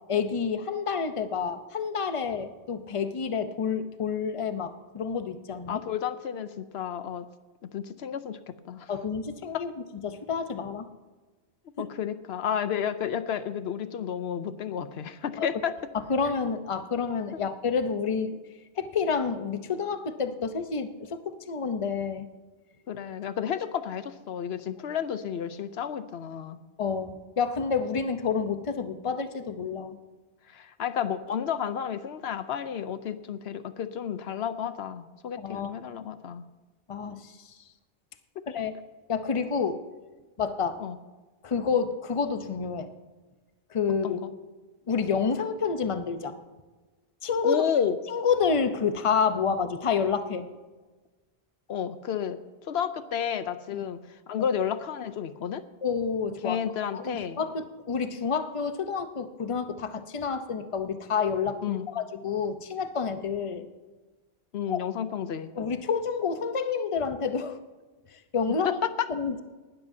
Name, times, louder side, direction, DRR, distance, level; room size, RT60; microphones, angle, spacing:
voice 1, 0.1-5.8 8.9-9.7 10.0-10.9 11.8-11.9 15.4-15.5 16.1-18.4 18.8-22.3 26.8-30.0 35.4-35.7 36.9-37.4 38.5-38.7 39.1-39.8 40.4-40.8 41.4-42.9 43.7-44.2 44.9-46.4 47.2-47.6 48.1-50.5 53.7-53.8 54.4-54.5 55.8-56.6 56.9-63.7 64.7-64.8 65.6-67.6 68.3-68.8 69.1-69.4, left 6 dB, 35° left, 9 dB, 0.8 m, -29 dB
voice 2, 5.7-7.3 7.6-8.9 9.5-9.6 11.8-15.7 22.9-26.6 30.5-36.4 40.8-41.0 44.0-44.3 47.4-48.0 51.7-54.0 54.3-55.6 56.4-57.4 61.6-61.9 64.5-65.5 68.6-69.1, left 8 dB, 80° left, 12 dB, 0.9 m, -31 dB
19.0 x 12.5 x 2.7 m, 1.3 s
omnidirectional pair, 1.1 m